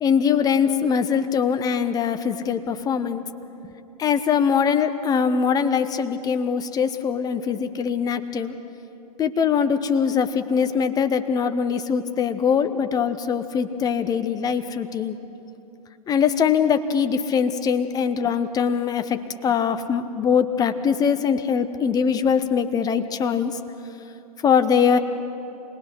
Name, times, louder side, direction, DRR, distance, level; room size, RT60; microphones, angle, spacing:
voice 1, 0.0-3.2 4.0-8.5 9.2-15.2 16.1-23.5 24.4-25.0, left 7 dB, 20° left, 9 dB, 1.0 m, -22 dB
28.5 x 20.0 x 6.0 m, 2.9 s
figure-of-eight pair, 110°, 21 cm